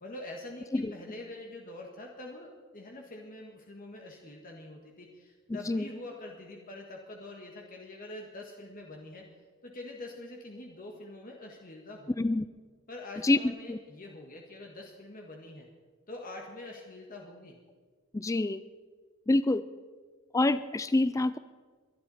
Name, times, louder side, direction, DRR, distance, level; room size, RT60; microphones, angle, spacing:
voice 1, 0.0-9.3 9.6-12.2 12.9-15.7 16.1-17.6, left 2 dB, 40° left, 0 dB, 1.5 m, -45 dB
voice 2, 5.5-5.8 12.2-12.4 13.2-13.4 13.7-13.8 18.1-18.6 19.3-19.6 20.3-21.4, left 2 dB, 15° left, 14 dB, 0.3 m, -26 dB
22.5 x 11.5 x 4.2 m, 1.5 s
head